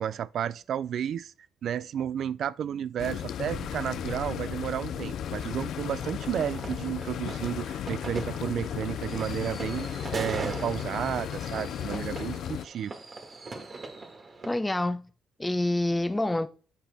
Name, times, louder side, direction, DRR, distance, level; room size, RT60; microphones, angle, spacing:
voice 1, 0.0-1.3 1.6-12.9, right 9 dB, 65° right, 0.4 m, -32 dB
sound 1, 3.0-12.6, left 10 dB, 70° left, 0.4 m, -35 dB
sound 2, 3.5-9.6, right 3 dB, 85° right, 1.8 m, -48 dB
sound 3, 6.0-14.6, right 3 dB, 35° right, 1.6 m, -41 dB
voice 2, 14.4-15.1 15.4-16.5, left 1 dB, 10° left, 0.7 m, -27 dB
8.1 x 5.7 x 3.5 m
cardioid pair, 90°, 0 cm